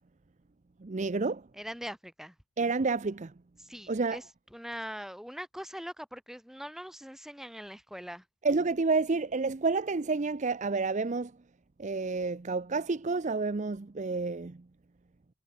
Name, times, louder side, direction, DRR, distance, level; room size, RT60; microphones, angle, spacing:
voice 1, 0.8-1.4 2.6-3.3 3.9-4.2 8.4-11.3 11.8-14.6, right 4 dB, 35° right, 0.5 m, -29 dB
voice 2, 1.5-2.4 3.6-4.2 4.5-8.2, equal, ahead, 5.6 m, -42 dB
head